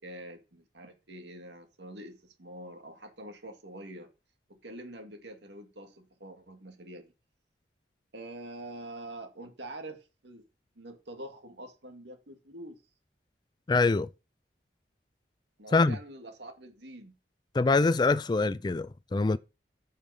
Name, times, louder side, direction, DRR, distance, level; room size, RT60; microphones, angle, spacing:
voice 1, 0.0-4.1 4.5-7.1 8.1-10.4 10.8-12.8 15.6-17.2, right 1 dB, 80° right, 2.1 m, -45 dB
voice 2, 13.7-14.1 15.7-16.0 17.5-19.4, left 3 dB, 25° left, 0.3 m, -24 dB
9.6 x 5.5 x 4.9 m
head